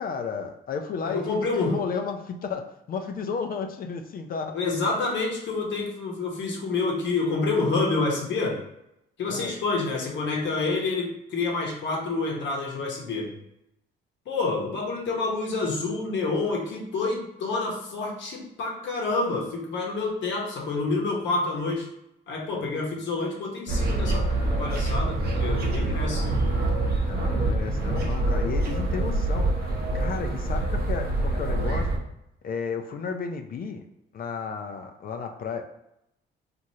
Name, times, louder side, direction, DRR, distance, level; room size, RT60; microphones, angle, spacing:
voice 1, 0.0-4.6 9.3-9.6 27.0-29.5 29.9-31.9 32.4-33.8 34.1-35.6, left 5 dB, 45° left, 5 dB, 0.4 m, -33 dB
voice 2, 1.0-1.8 4.5-8.6 9.2-13.4 14.3-21.9 22.3-24.2 24.6-26.2, left 3 dB, 65° left, -1 dB, 0.8 m, -28 dB
sound 1, 23.7-32.0, right 2 dB, 50° right, 0.7 m, -25 dB
3.0 x 2.4 x 2.7 m, 0.83 s
cardioid pair, 90°, 20 cm